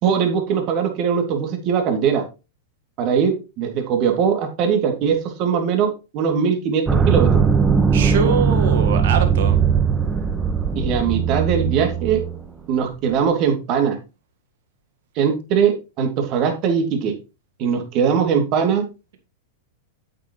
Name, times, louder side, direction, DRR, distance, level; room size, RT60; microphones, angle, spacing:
voice 1, 0.0-2.2 3.0-7.4 10.7-12.2 12.7-14.0 15.2-17.1 17.6-18.8, right 7 dB, 45° right, 2.7 m, -21 dB
sound 1, 6.9-12.4, right 6 dB, 15° right, 1.4 m, -19 dB
voice 2, 7.9-9.6, right 6 dB, 65° right, 1.7 m, -23 dB
9.0 x 8.3 x 3.2 m
hypercardioid pair, 100°, 0 cm